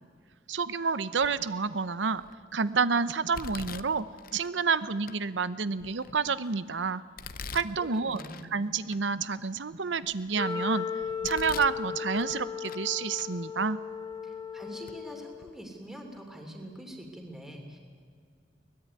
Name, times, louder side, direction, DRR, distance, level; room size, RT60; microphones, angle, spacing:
voice 1, 0.5-2.2 2.5-4.1 4.3-7.0 7.5-8.2 8.5-10.9 11.2-13.8, right 5 dB, 90° right, 15 dB, 0.8 m, -29 dB
Domestic sounds home sounds, 1.2-1.6 2.2-2.6 3.3-4.5 5.1-5.2 5.8-6.5 7.2-8.5 8.9-9.0 9.6-10.5 11.0-11.8 12.1-12.9 13.1-13.3 14.1-14.2 14.9-15.0 15.3-15.5, left 5 dB, 55° left, 0.9 m, -44 dB
voice 2, 7.8-8.5 14.2-17.8, right 1 dB, ahead, 2 dB, 3.0 m, -44 dB
Wind instrument woodwind instrument, 10.3-15.5, left 6 dB, 20° left, 1.5 m, -36 dB
23.0 x 18.5 x 9.5 m, 2.2 s
head